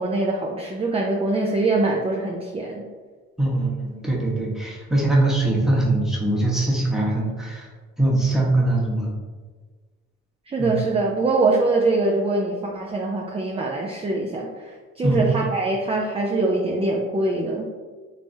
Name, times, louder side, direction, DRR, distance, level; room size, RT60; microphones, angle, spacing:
voice 1, 0.0-2.9 10.5-17.6, right 2 dB, 20° right, -1 dB, 0.4 m, -23 dB
voice 2, 3.4-7.7 8.0-9.1 10.6-10.7 15.0-15.3, right 2 dB, ahead, -5 dB, 1.0 m, -22 dB
3.4 x 3.0 x 2.7 m, 1.4 s
cardioid pair, 90°, 30 cm